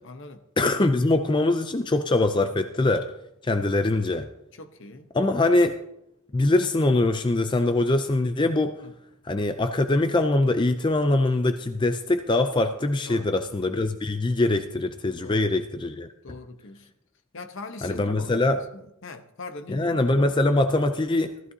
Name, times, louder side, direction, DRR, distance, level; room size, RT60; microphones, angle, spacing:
voice 1, 0.0-0.4 3.6-3.8 4.5-5.1 8.8-8.9 13.1-13.3 15.2-15.5 16.2-16.9 17.3-20.4, left 3 dB, 60° left, 0.9 m, -42 dB
voice 2, 0.6-3.1 3.4-4.3 5.1-5.8 6.3-8.8 9.2-16.1 17.8-18.6 19.7-21.3, left 2 dB, 20° left, 0.4 m, -23 dB
15.5 x 14.0 x 2.8 m
head